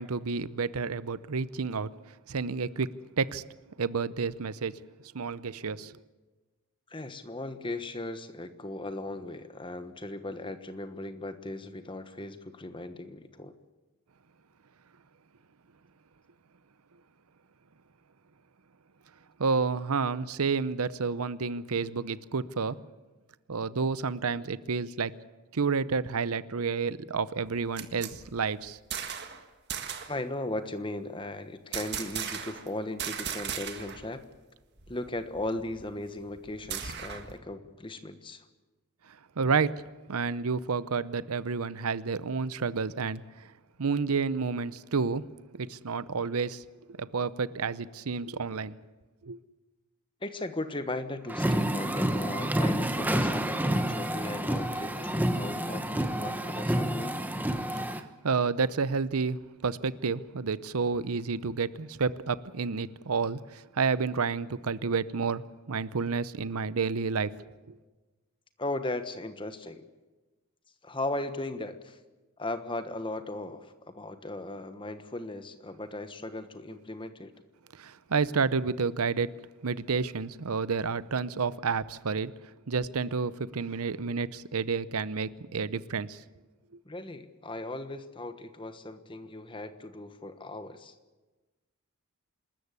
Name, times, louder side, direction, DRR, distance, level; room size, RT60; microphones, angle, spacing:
voice 1, 0.0-1.9 2.3-3.4 3.8-4.8 5.1-5.9 19.4-22.8 23.5-25.1 25.5-28.8 39.4-39.8 40.1-43.2 43.8-45.2 45.5-46.6 46.9-48.7 49.2-49.4 57.9-67.3 67.7-67.8 77.7-79.3 79.6-82.3 82.7-86.2, right 5 dB, 80° right, 0.7 m, -30 dB
voice 2, 6.9-13.5 30.1-34.2 34.9-38.4 50.2-57.2 68.6-69.8 70.8-72.0 72.4-77.3 86.8-90.9, left 2 dB, 20° left, 1.2 m, -37 dB
sound 1, 27.5-29.4 29.7-30.2 31.7-32.7 33.0-34.1 34.3-34.4 34.8-37.4, right 8 dB, 50° right, 1.8 m, -37 dB
sound 2, 51.3-58.0, right 1 dB, 10° right, 1.0 m, -29 dB
26.5 x 13.5 x 9.7 m
head